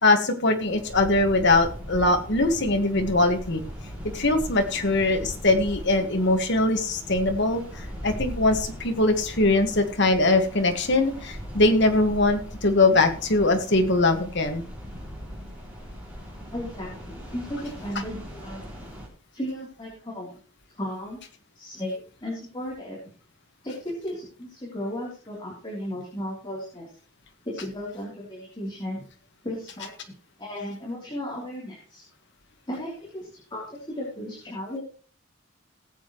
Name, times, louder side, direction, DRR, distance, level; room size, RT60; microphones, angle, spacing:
voice 1, 0.0-3.6 4.0-14.6, left 2 dB, 55° left, 6 dB, 1.6 m, -22 dB
sound 1, 0.6-19.1, equal, 5° right, 5.1 m, -39 dB
voice 2, 16.5-18.6 19.3-20.4 20.7-21.2 21.5-23.0 23.6-26.9 27.4-29.0 29.4-30.1 30.4-32.0 32.7-34.8, left 1 dB, 20° left, -5 dB, 3.4 m, -35 dB
19.0 x 8.0 x 3.1 m, 0.40 s
head